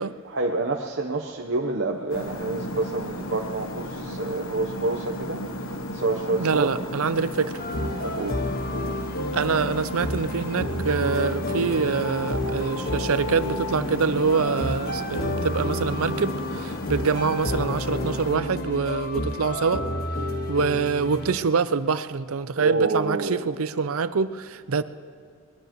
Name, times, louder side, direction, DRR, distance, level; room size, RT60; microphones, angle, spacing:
voice 1, 0.2-6.7 8.0-8.4 22.6-23.4, right 3 dB, 60° right, 0 dB, 0.9 m, -28 dB
sound 1, 2.1-18.4, left 1 dB, 75° left, 1.1 m, -34 dB
voice 2, 6.4-7.6 9.3-19.9 20.5-24.8, right 5 dB, 85° right, 13 dB, 0.6 m, -25 dB
sound 2, 7.6-21.4, left 1 dB, 45° left, 1.6 m, -30 dB
22.5 x 20.5 x 3.1 m, 2.4 s
head